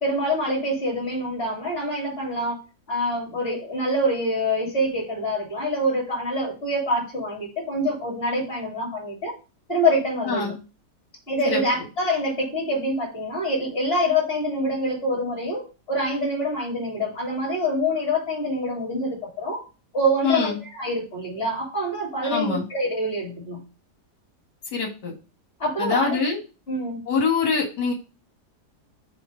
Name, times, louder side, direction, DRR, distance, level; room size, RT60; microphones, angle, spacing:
voice 1, 0.0-2.6 2.9-9.3 9.7-10.5 11.3-19.7 19.9-23.6 25.6-26.2 26.7-27.0, equal, 35° left, -3 dB, 3.1 m, -25 dB
voice 2, 10.2-10.5 11.4-11.6 20.2-20.6 22.2-22.7 24.7-25.1 25.8-26.4 27.1-27.9, left 4 dB, 85° left, 1 dB, 2.3 m, -24 dB
7.0 x 2.9 x 5.0 m, 0.32 s
omnidirectional pair, 1.8 m